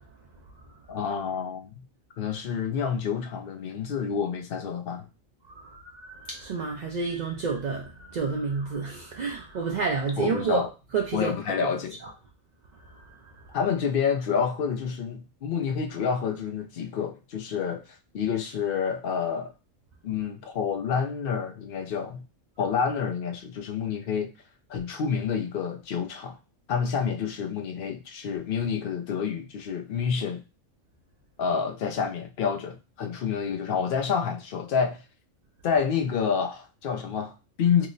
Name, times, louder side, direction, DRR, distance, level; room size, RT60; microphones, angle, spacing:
voice 1, 0.9-1.8 2.2-5.1 10.2-10.7 11.1-12.0 13.5-17.8 18.1-19.5 20.0-22.2 22.6-24.3 24.7-26.4 26.7-30.4 31.4-35.0 35.6-37.9, left 6 dB, 60° left, 0.6 m, -28 dB
voice 2, 5.5-10.7 10.9-11.3 11.6-11.7 12.0-12.1 12.8-13.5, right 5 dB, 70° right, 0.4 m, -30 dB
2.8 x 2.0 x 3.8 m
omnidirectional pair, 1.3 m